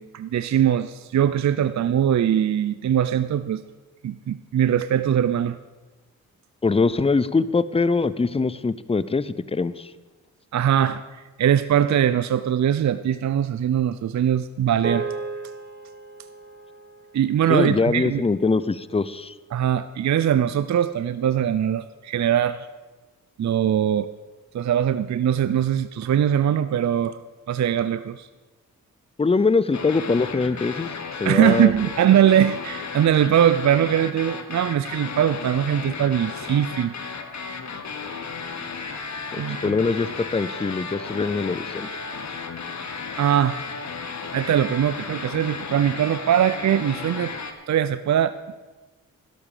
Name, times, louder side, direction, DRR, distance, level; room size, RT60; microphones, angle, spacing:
voice 1, 0.0-3.6 4.0-5.6 10.5-11.0 11.4-15.1 17.1-18.2 19.5-22.7 23.4-24.1 24.5-27.2 27.5-28.3 31.2-36.9 39.4-39.8 43.2-43.6 44.3-47.3 47.7-48.5, right 10 dB, 50° right, 13 dB, 0.5 m, -21 dB
voice 2, 6.6-9.9 17.5-19.3 29.2-30.9 31.2-31.7 39.3-42.0, left 4 dB, 15° left, 17 dB, 0.6 m, -23 dB
sound 1, 14.8-19.4, right 4 dB, 30° right, 1.3 m, -36 dB
sound 2, 29.7-47.5, left 5 dB, 50° left, 1.4 m, -34 dB
12.0 x 11.5 x 5.0 m, 1.2 s
cardioid pair, 55°, 36 cm